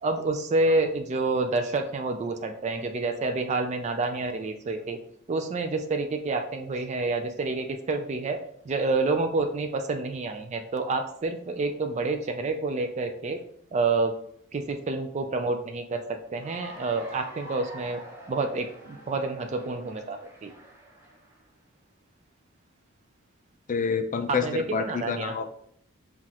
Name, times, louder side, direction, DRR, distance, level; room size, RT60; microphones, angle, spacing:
voice 1, 0.0-5.0 5.3-8.4 8.7-13.4 13.7-14.1 14.5-16.0 16.3-18.0 18.3-20.5 24.3-25.3, right 3 dB, 30° right, 6 dB, 0.3 m, -28 dB
Cheering / Applause, 16.3-21.5, equal, 10° right, 0.8 m, -46 dB
voice 2, 23.7-25.5, left 5 dB, 35° left, 7 dB, 0.4 m, -28 dB
5.7 x 2.4 x 2.8 m, 0.66 s
head